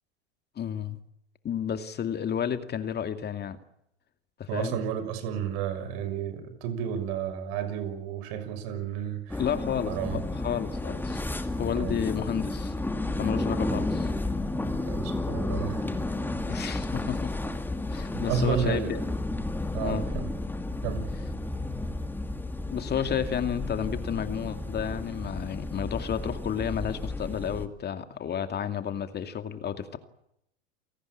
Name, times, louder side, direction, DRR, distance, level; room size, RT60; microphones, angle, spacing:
voice 1, 0.6-1.0 1.4-3.6 4.4-4.8 9.4-11.2 11.6-12.7 13.2-14.1 16.5-17.3 17.9-19.0 19.8-20.1 22.7-30.0, left 8 dB, 30° left, 9 dB, 2.4 m, -31 dB
voice 2, 4.5-9.4 9.9-10.2 11.8-12.0 14.8-15.8 18.1-18.9 19.7-20.3 20.8-21.1, right 7 dB, 60° right, 10 dB, 6.3 m, -31 dB
sound 1, 9.3-27.7, left 2 dB, 5° left, 2.4 m, -32 dB
29.0 x 18.0 x 8.7 m, 0.78 s
hypercardioid pair, 100°, 34 cm